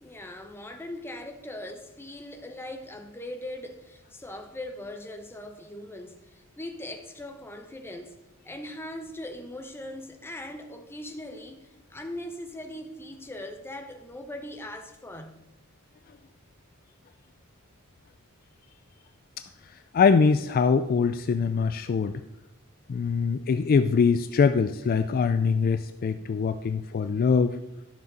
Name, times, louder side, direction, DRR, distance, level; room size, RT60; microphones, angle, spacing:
voice 1, 0.0-8.1 8.4-15.4, left 1 dB, 10° left, 0.9 m, -40 dB
voice 2, 19.9-22.2 22.9-27.6, left 5 dB, 40° left, 0.3 m, -23 dB
12.0 x 6.8 x 4.0 m
head